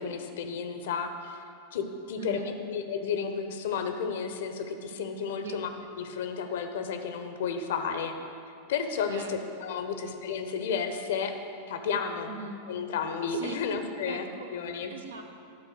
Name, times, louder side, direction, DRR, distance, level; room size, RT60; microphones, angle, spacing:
voice 1, 0.0-1.4 1.7-5.7 6.0-8.2 8.7-11.3 11.7-12.3 12.7-14.9, left 6 dB, 55° left, 7 dB, 0.8 m, -32 dB
voice 2, 2.2-2.6 5.4-5.6 9.1-9.4 10.0-10.2 12.3-12.6 13.3-13.6 14.1-14.5 14.9-15.2, right 4 dB, 65° right, 4 dB, 0.8 m, -40 dB
11.5 x 4.3 x 6.3 m, 2.5 s
figure-of-eight pair, 90°, 0 cm